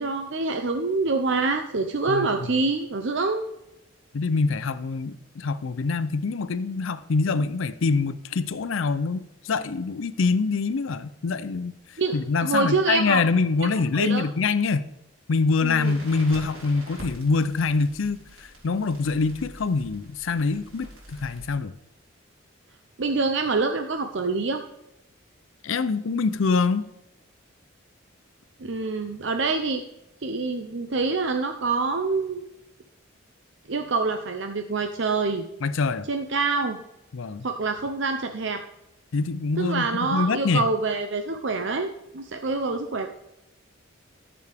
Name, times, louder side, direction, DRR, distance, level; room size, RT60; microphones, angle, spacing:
voice 1, 0.0-3.4 12.0-13.2 13.6-14.2 15.6-15.9 23.0-24.6 28.6-29.8 30.2-32.4 33.7-35.4 36.1-36.8 37.4-38.6 39.6-43.1, right 3 dB, 60° right, 6 dB, 0.7 m, -26 dB
voice 2, 4.1-14.9 15.3-21.7 25.6-26.9 35.6-36.1 37.1-37.5 39.1-40.7, left 4 dB, 70° left, 13 dB, 0.5 m, -25 dB
Crackle, 15.8-21.6, right 1 dB, 85° right, 4.0 m, -45 dB
14.0 x 7.0 x 3.5 m, 0.90 s
head